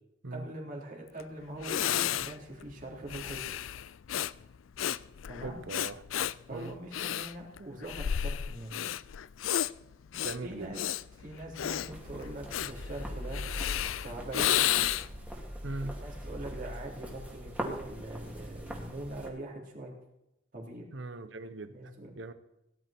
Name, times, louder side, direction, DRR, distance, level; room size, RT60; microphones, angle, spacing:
voice 1, 0.3-3.4 5.3-5.6 6.5-8.8 10.2-10.8 11.1-13.4 14.0-14.6 15.6-19.9 20.5-20.9 21.7-22.1, right 1 dB, 45° right, 3.8 m, -42 dB
Breathing, 1.2-1.3 1.6-15.3, left 11 dB, 90° left, 0.4 m, -33 dB
voice 2, 5.4-6.0 6.5-6.7 10.2-10.7 15.6-15.9 20.9-21.7 22.2-22.3, right 2 dB, 65° right, 1.0 m, -39 dB
sound 1, 11.9-19.3, equal, 5° right, 2.5 m, -41 dB
18.0 x 11.5 x 4.5 m
head